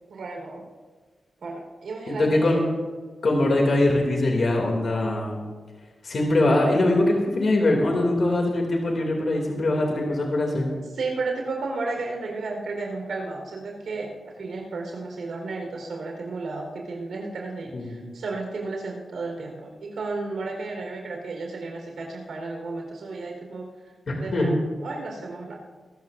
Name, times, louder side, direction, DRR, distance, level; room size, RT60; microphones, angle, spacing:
voice 1, 0.1-0.6 1.4-2.6 10.9-23.7 24.2-25.5, right 3 dB, 90° right, 0 dB, 4.2 m, -33 dB
voice 2, 2.1-2.6 3.2-5.4 6.0-10.7 17.7-18.0 24.1-24.5, left 2 dB, 50° left, 0 dB, 2.7 m, -22 dB
23.5 x 14.0 x 2.6 m, 1.4 s
wide cardioid pair, 145°, 0 cm